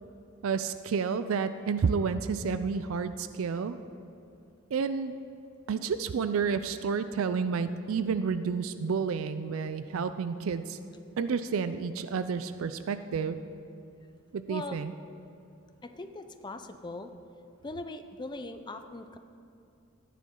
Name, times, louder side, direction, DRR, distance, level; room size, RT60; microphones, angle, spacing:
voice 1, 0.4-3.8 4.7-5.2 5.7-10.8 11.2-13.4 14.3-14.9, right 5 dB, 75° right, 12 dB, 0.4 m, -30 dB
voice 2, 14.5-14.8 15.8-17.1 17.6-19.2, left 2 dB, 20° left, 8 dB, 0.5 m, -40 dB
14.5 x 9.3 x 3.7 m, 2.6 s
head